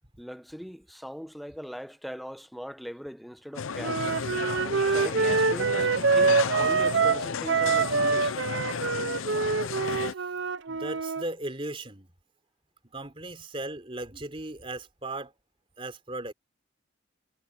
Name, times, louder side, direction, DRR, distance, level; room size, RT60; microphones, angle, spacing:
voice 1, 0.2-4.1 4.6-8.4 10.7-10.8, equal, ahead, 0.8 m, -40 dB
sound 1, 3.5-10.1, left 6 dB, 90° left, 0.6 m, -33 dB
Wind instrument woodwind instrument, 3.8-11.2, right 4 dB, 65° right, 0.6 m, -25 dB
voice 2, 9.8-10.2 10.7-12.1 12.8-15.3 15.8-16.3, right 2 dB, 25° right, 3.7 m, -37 dB
head